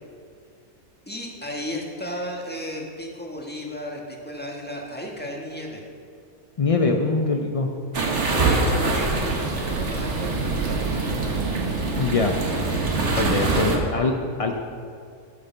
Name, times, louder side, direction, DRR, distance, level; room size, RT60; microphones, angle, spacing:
voice 1, 1.1-5.9 8.2-11.0 13.1-13.9, left 1 dB, 5° left, -1 dB, 1.4 m, -35 dB
voice 2, 6.6-7.7 11.9-12.3 13.1-14.6, left 3 dB, 60° left, 3 dB, 0.3 m, -23 dB
sound 1, 7.9-13.8, right 3 dB, 50° right, 1.6 m, -24 dB
13.5 x 6.7 x 5.7 m, 2.4 s
omnidirectional pair, 1.6 m